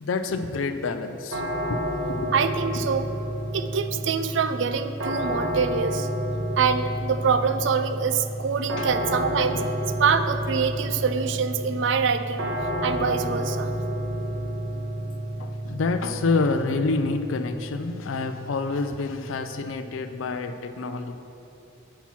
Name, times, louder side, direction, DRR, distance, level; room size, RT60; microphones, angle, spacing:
voice 1, 0.0-2.3 8.8-8.9 15.4-21.2, left 3 dB, 75° left, 8 dB, 0.4 m, -28 dB
sound 1, 1.3-20.2, equal, 90° right, 1.3 m, -30 dB
voice 2, 2.3-3.1 3.5-6.1 6.6-9.6 10.0-12.5 12.8-13.7, right 6 dB, 65° right, 11 dB, 0.4 m, -25 dB
8.4 x 5.8 x 5.9 m, 3.0 s
head